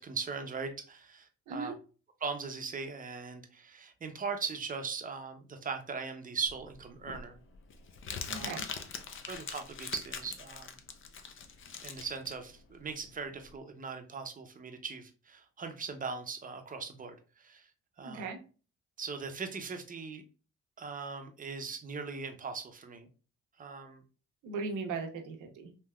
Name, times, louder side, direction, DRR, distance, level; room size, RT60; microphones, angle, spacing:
voice 1, 0.0-1.7 2.2-7.4 8.3-8.6 9.3-10.8 11.8-17.7 18.0-18.3 19.0-20.2 20.8-23.1 23.6-24.0, right 5 dB, 30° right, 6 dB, 0.6 m, -39 dB
Crumpling crinkling, 6.5-13.5, left 6 dB, 45° left, 0.5 m, -43 dB
voice 2, 8.3-8.6 18.0-18.4 24.4-25.7, right 4 dB, 90° right, 4 dB, 0.7 m, -38 dB
3.4 x 2.7 x 2.2 m, 0.36 s
cardioid pair, 90°, 30 cm